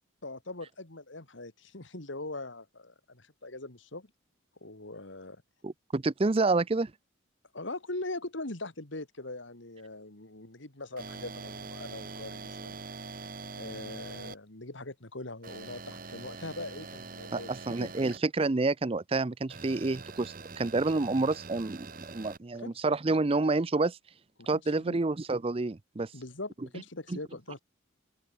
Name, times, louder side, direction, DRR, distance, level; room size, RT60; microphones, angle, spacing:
voice 1, 0.2-4.1 4.6-5.4 7.5-12.8 13.5-17.5 17.8-17.9 22.5-22.8 24.4-25.0 26.1-27.6, left 2 dB, 65° left, 2.5 m, -41 dB
voice 2, 5.6-6.9 17.3-24.0 24.5-26.1 27.1-27.2, right 3 dB, 30° right, 0.5 m, -29 dB
sound 1, 11.0-14.3 15.4-18.2 19.5-22.4, right 4 dB, 45° right, 1.3 m, -44 dB
open air
head